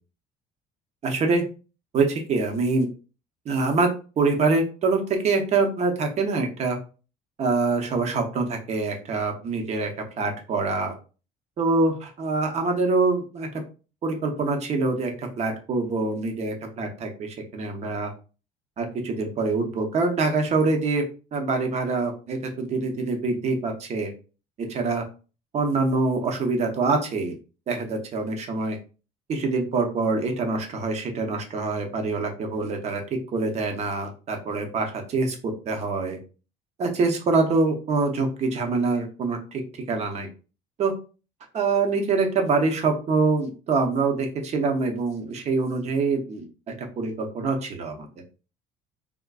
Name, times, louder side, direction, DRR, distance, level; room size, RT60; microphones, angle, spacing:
voice 1, 1.0-1.4 1.9-2.9 3.5-3.9 4.2-6.8 7.4-9.9 10.2-10.9 11.6-13.5 14.0-18.1 18.8-21.0 21.3-24.1 24.6-25.0 25.5-27.4 27.7-28.8 29.3-36.2 36.8-39.6 39.9-40.3 40.8-40.9 41.5-46.5 47.0-48.1, right 3 dB, 40° right, 4 dB, 0.8 m, -25 dB
3.6 x 2.5 x 2.3 m, 0.34 s
cardioid pair, 130°, 17 cm